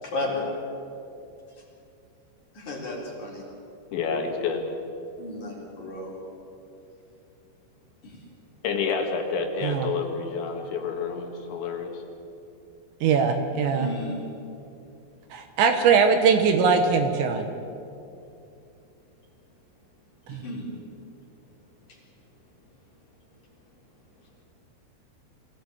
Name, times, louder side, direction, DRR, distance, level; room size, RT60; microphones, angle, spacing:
voice 1, 0.0-0.4 2.5-3.4 5.2-6.1 8.0-8.2 13.7-14.2 20.3-20.7, left 2 dB, 40° left, -2 dB, 4.8 m, -33 dB
voice 2, 3.9-4.7 8.6-12.0, left 5 dB, 70° left, 3 dB, 3.9 m, -29 dB
voice 3, 13.0-13.9 15.3-17.5 20.3-20.4, right 6 dB, 70° right, 6 dB, 3.2 m, -21 dB
24.0 x 16.5 x 8.8 m, 2.7 s
omnidirectional pair, 5.7 m